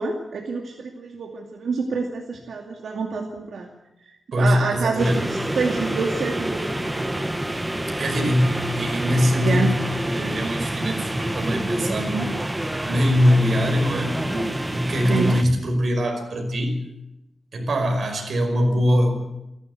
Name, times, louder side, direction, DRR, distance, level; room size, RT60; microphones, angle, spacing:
voice 1, 0.0-3.7 4.4-7.3 9.4-9.7 15.1-15.4, right 4 dB, 80° right, 1 dB, 2.5 m, -27 dB
voice 2, 4.3-5.3 8.0-16.8 17.5-19.2, equal, 55° right, 4 dB, 5.4 m, -22 dB
sound 1, 5.0-15.4, right 1 dB, 10° right, 1.1 m, -27 dB
29.0 x 12.5 x 8.2 m, 0.90 s
wide cardioid pair, 165°, 0 cm